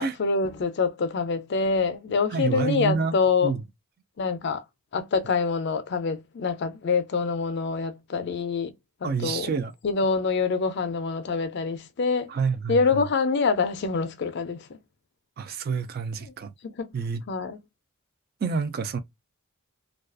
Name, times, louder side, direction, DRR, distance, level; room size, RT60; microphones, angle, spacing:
voice 1, 0.0-3.5 4.2-4.6 4.9-8.7 9.0-9.5 9.8-12.3 12.7-14.7 16.6-16.9 17.3-17.6, left 4 dB, 50° left, 0.4 m, -25 dB
voice 2, 2.3-3.2 3.4-3.6 9.0-9.7 12.3-12.8 15.4-16.5 16.9-17.2 18.4-19.0, right 5 dB, 45° right, 0.3 m, -28 dB
2.3 x 2.3 x 2.4 m
head